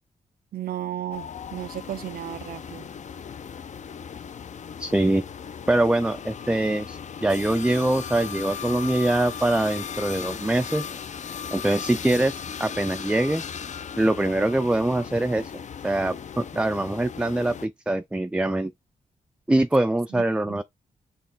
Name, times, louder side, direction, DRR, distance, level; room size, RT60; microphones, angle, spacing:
voice 1, 0.5-2.9 20.1-20.6, right 12 dB, 75° right, 0.4 m, -34 dB
sound 1, 1.1-17.7, left 7 dB, 50° left, 0.5 m, -37 dB
voice 2, 4.8-5.2 5.7-10.9 11.5-13.4 14.0-15.5 15.8-18.7 19.5-20.6, right 1 dB, 5° right, 0.3 m, -23 dB
4.4 x 2.9 x 3.8 m
cardioid pair, 85°, 15 cm